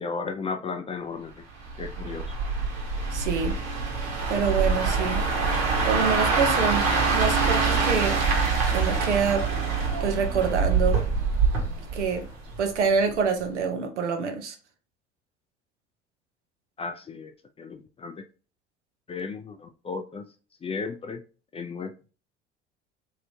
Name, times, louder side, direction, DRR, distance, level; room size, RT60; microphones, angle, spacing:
voice 1, 0.0-1.4 1.8-2.3 16.8-17.3 17.6-18.1 19.1-20.2 20.6-21.2 21.5-22.1, left 4 dB, 20° left, 0.3 m, -34 dB
sound 1, 1.6-12.8 13.1-13.4, right 4 dB, 65° right, 1.2 m, -25 dB
voice 2, 3.1-3.6 4.3-5.2 5.8-8.2 8.7-9.5 10.0-11.0 11.9-12.3 12.6-14.6, right 6 dB, 85° right, 0.7 m, -26 dB
3.2 x 2.8 x 2.7 m
hypercardioid pair, 65°, 34 cm